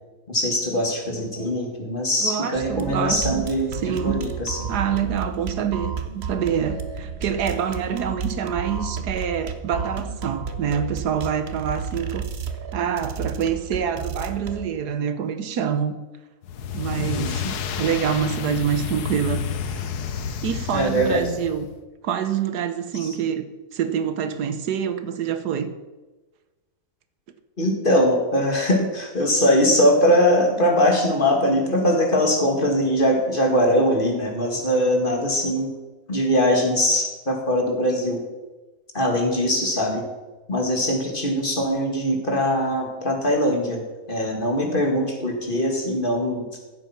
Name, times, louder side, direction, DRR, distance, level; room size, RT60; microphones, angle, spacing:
voice 1, 0.3-4.7 17.0-17.4 20.7-21.2 23.0-23.2 27.6-35.7 36.1-38.2 38.9-40.0 40.5-43.8 44.1-46.5, equal, 35° left, 2.3 m, -21 dB
voice 2, 2.2-4.3 4.7-12.2 12.7-15.9 16.7-17.4 17.8-19.4 20.4-21.7 22.0-23.5 23.7-25.7, right 8 dB, 85° right, 1.5 m, -26 dB
sound 1, 2.5-14.6, right 5 dB, 45° right, 1.1 m, -32 dB
sound 2, 16.4-21.8, left 7 dB, 80° left, 1.4 m, -30 dB
15.0 x 8.2 x 5.8 m
omnidirectional pair, 1.7 m